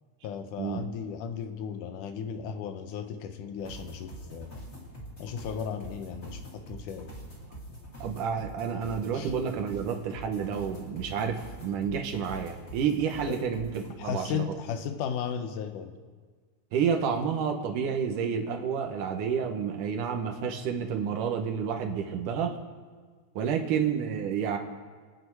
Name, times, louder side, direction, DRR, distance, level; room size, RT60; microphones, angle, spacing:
voice 1, 0.2-4.6 5.2-7.1 9.1-9.3 13.3-13.4 14.0-15.9, left 7 dB, 80° left, 8 dB, 2.4 m, -35 dB
sound 1, 3.6-13.9, right 1 dB, 25° left, 3.0 m, -45 dB
voice 2, 8.0-14.4 16.7-22.6 23.4-24.6, right 7 dB, 85° right, 4 dB, 2.7 m, -30 dB
27.0 x 9.2 x 4.7 m, 1.5 s
omnidirectional pair, 3.6 m